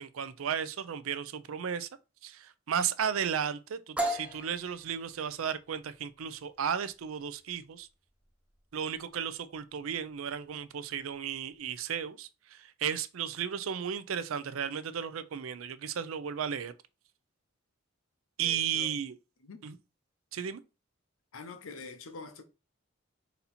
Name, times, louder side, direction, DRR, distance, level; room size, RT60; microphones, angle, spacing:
voice 1, 0.0-1.9 2.2-7.9 8.7-16.7 18.4-19.1 19.6-19.7 20.3-20.6, right 8 dB, 85° right, 0.5 m, -34 dB
sound 1, 4.0-11.6, right 1 dB, 5° right, 0.6 m, -40 dB
voice 2, 18.4-19.0 19.4-19.6 21.3-22.4, left 4 dB, 80° left, 0.7 m, -45 dB
4.1 x 2.8 x 4.1 m
head